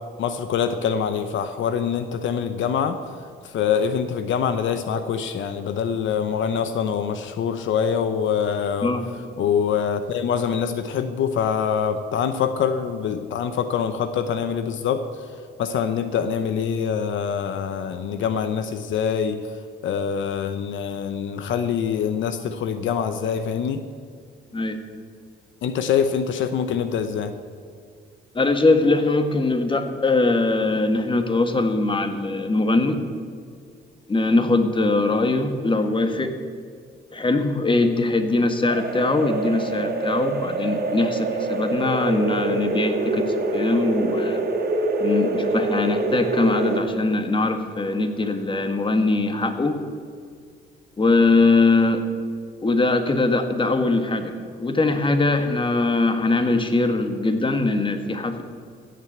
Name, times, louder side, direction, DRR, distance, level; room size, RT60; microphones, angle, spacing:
voice 1, 0.2-3.0 3.4-8.9 9.4-15.3 15.6-19.5 19.8-23.8 25.6-27.3, left 7 dB, 75° left, 9 dB, 0.8 m, -24 dB
voice 2, 28.3-33.0 34.1-36.3 37.1-44.4 45.0-49.8 51.0-52.0 52.6-58.4, left 2 dB, 25° left, 7 dB, 1.6 m, -21 dB
sound 1, 38.7-46.8, right 2 dB, 55° right, 2.5 m, -25 dB
15.0 x 7.6 x 8.0 m, 2.2 s
cardioid pair, 90°, 20 cm